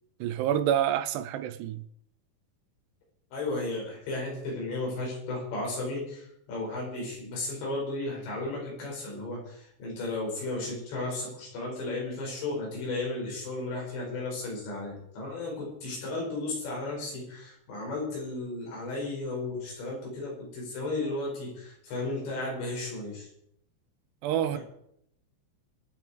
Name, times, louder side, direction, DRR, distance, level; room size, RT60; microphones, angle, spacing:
voice 1, 0.2-1.8 24.2-24.6, right 10 dB, 80° right, 2.9 m, -27 dB
voice 2, 3.3-23.3 24.5-24.6, left 2 dB, 85° left, 8.0 m, -34 dB
25.0 x 9.2 x 4.6 m
omnidirectional pair, 4.9 m